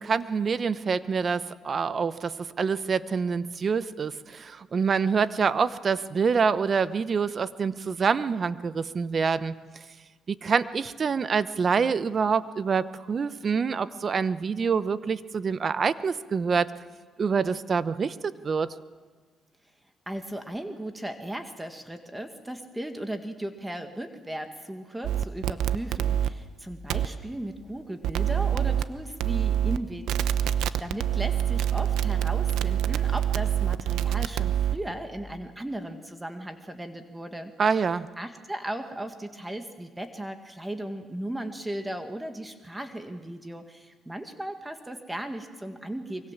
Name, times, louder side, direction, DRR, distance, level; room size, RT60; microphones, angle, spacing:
voice 1, 0.0-9.6 10.3-16.7 17.2-18.7 37.6-38.1, right 5 dB, 45° right, 14 dB, 1.0 m, -26 dB
voice 2, 20.1-30.1 30.4-37.5 38.2-46.3, right 1 dB, 10° right, 7 dB, 1.8 m, -36 dB
sound 1, 25.0-26.3 26.9-27.1 28.0-28.8 29.2-29.8 30.1-34.8, right 10 dB, 90° right, 0.8 m, -25 dB
24.0 x 23.5 x 7.4 m, 1.5 s
cardioid pair, 90°, 0 cm